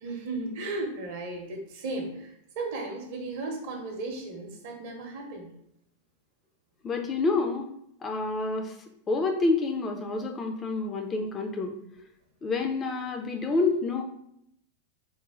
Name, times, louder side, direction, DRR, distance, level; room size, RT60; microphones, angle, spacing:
voice 1, 0.0-5.5, right 2 dB, 50° right, 2 dB, 0.7 m, -35 dB
voice 2, 6.8-7.7 8.0-8.8 9.1-11.8 12.4-14.0, left 3 dB, 20° left, 4 dB, 0.4 m, -28 dB
3.1 x 2.1 x 3.5 m, 0.74 s
figure-of-eight pair, 90°, 0 cm